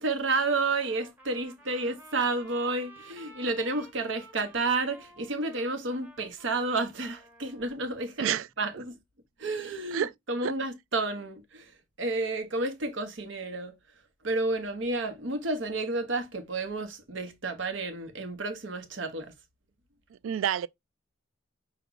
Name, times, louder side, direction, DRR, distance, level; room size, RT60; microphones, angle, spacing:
voice 1, 0.0-9.0 9.4-11.7 12.0-13.7 14.2-19.3, right 3 dB, 70° right, 0.9 m, -31 dB
Trumpet, 0.8-7.8, right 1 dB, 10° right, 1.1 m, -53 dB
voice 2, 20.2-20.7, right 10 dB, 85° right, 0.3 m, -28 dB
5.8 x 2.3 x 3.8 m
head